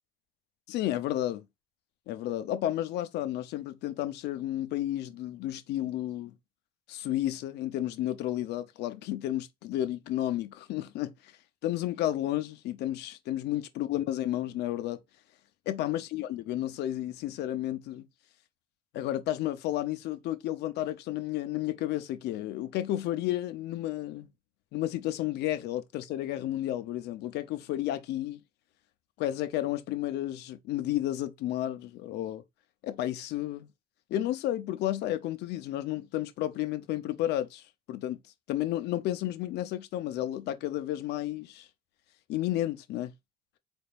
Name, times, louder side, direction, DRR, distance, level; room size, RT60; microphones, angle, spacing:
voice 1, 0.7-1.4 2.1-6.3 6.9-11.1 11.6-15.0 15.7-18.1 18.9-24.3 24.7-28.4 29.2-32.4 32.8-33.7 34.1-37.6 37.9-38.2 38.5-41.7 42.3-43.1, left 13 dB, 65° left, 0.7 m, -32 dB
4.2 x 3.5 x 2.5 m
hypercardioid pair, 70°, 18 cm